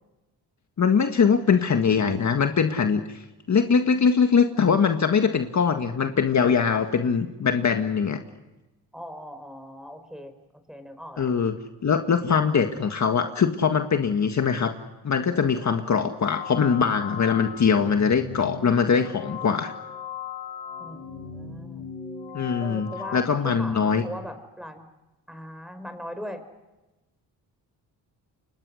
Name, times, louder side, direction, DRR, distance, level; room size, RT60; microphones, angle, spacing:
voice 1, 0.8-8.2 11.2-11.6 11.8-14.8 15.0-19.7 22.3-24.0, left 6 dB, 45° left, 6 dB, 1.8 m, -22 dB
voice 2, 8.9-10.3 10.7-11.3 20.8-21.9 22.6-24.8 25.3-26.4, equal, ahead, 8 dB, 5.2 m, -39 dB
sound 1, 16.2-23.2, left 7 dB, 75° left, 7.0 m, -37 dB
29.5 x 25.0 x 6.5 m, 1.1 s
cardioid pair, 80°, 40 cm